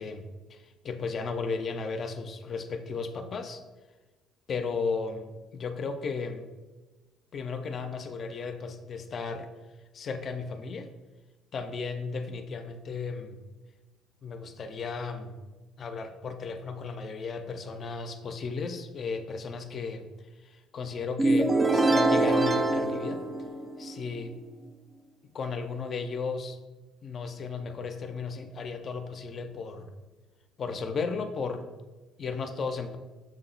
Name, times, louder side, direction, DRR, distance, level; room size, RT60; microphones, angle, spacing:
voice 1, 0.0-3.6 4.5-6.5 7.3-9.5 9.9-10.9 11.5-13.4 14.2-15.4 15.8-20.1 20.4-23.2 23.8-24.4 25.3-26.6 27.0-29.9 30.6-31.7 32.2-33.0, left 4 dB, 45° left, 8 dB, 0.4 m, -35 dB
sound 1, 21.2-24.0, right 2 dB, 20° right, 0.3 m, -24 dB
6.0 x 2.0 x 3.8 m, 1.2 s
cardioid pair, 95°, 0 cm